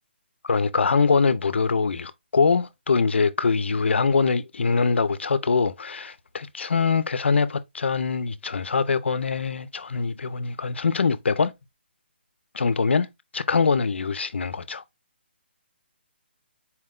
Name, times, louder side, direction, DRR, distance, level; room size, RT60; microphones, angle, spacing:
voice 1, 0.4-11.5 12.5-13.1 13.3-14.8, left 5 dB, 75° left, 0.5 m, -23 dB
4.4 x 2.2 x 3.6 m
hypercardioid pair, 170°, 6 cm